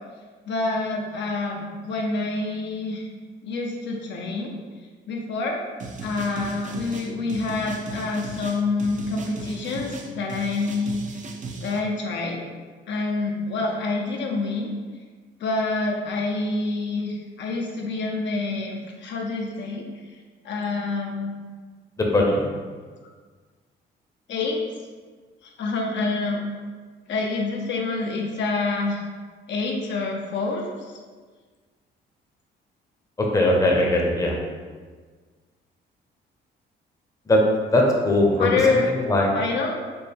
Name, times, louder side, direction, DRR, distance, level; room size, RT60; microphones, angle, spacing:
voice 1, 0.5-3.0 3.4-4.5 5.1-5.6 6.0-11.0 11.6-12.4 12.9-14.7 15.4-19.8 20.4-21.4 24.3-24.6 25.4-26.4 27.1-29.0 29.5-30.9 38.3-38.9 39.3-39.7, left 3 dB, 65° left, 0 dB, 0.6 m, -27 dB
sound 1, 5.8-11.8, right 3 dB, 40° right, 0.5 m, -37 dB
voice 2, 22.0-22.5 33.2-34.4 37.3-37.4 37.7-39.3, left 1 dB, 15° left, -1 dB, 0.7 m, -20 dB
4.2 x 2.1 x 3.5 m, 1.5 s
cardioid pair, 90°, 20 cm